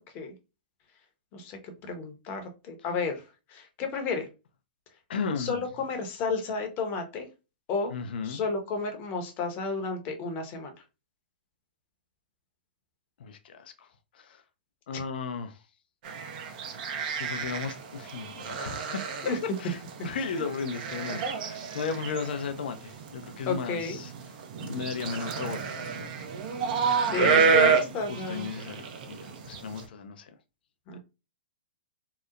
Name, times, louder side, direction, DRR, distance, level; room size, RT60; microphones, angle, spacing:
voice 1, 1.3-4.3 5.4-7.3 7.7-7.9 8.2-10.7 19.2-19.4 23.5-24.0 27.0-28.5 30.9-31.0, left 4 dB, 35° left, 0.7 m, -32 dB
voice 2, 5.1-5.6 7.9-8.4 13.2-13.9 14.1-14.4 14.9-15.6 16.7-16.8 17.2-24.1 24.6-26.3 27.2-27.8 28.1-30.3 30.9-31.0, left 5 dB, 65° left, 0.4 m, -35 dB
sound 1, 16.0-29.8, right 6 dB, 50° right, 0.5 m, -30 dB
2.8 x 2.0 x 2.4 m
hypercardioid pair, 120°, 6 cm